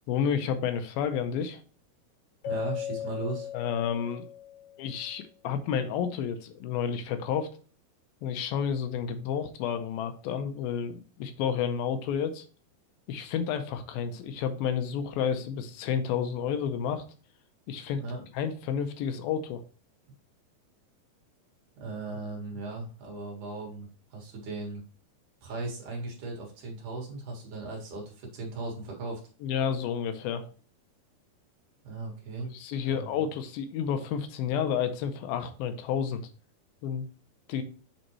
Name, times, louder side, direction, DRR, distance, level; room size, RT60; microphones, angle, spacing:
voice 1, 0.1-1.6 3.5-4.2 4.8-7.5 8.2-12.5 13.1-17.0 17.7-18.0 18.3-19.6 29.4-30.5 32.4-36.2 36.8-37.1 37.5-37.6, left 7 dB, 80° left, 9 dB, 2.4 m, -30 dB
Keyboard (musical), 2.4-4.9, left 10 dB, 60° left, 2.2 m, -37 dB
voice 2, 2.4-3.5 18.0-18.3 21.8-24.8 25.4-29.2 31.8-32.5 32.9-33.1, right 3 dB, 60° right, 0 dB, 2.9 m, -37 dB
7.8 x 4.3 x 3.1 m, 0.40 s
omnidirectional pair, 4.5 m